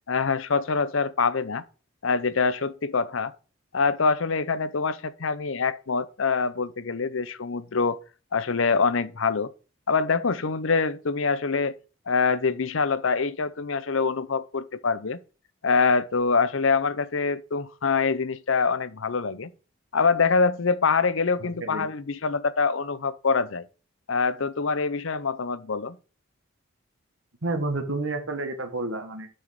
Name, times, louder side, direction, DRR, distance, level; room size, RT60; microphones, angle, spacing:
voice 1, 0.1-1.6 2.0-3.3 3.7-8.0 8.3-9.5 9.9-11.7 12.1-15.2 15.6-19.5 19.9-23.7 24.1-26.0, left 4 dB, 75° left, 0.7 m, -25 dB
voice 2, 21.4-21.9 27.4-29.3, right 2 dB, 85° right, 1.5 m, -30 dB
6.4 x 6.2 x 6.7 m
head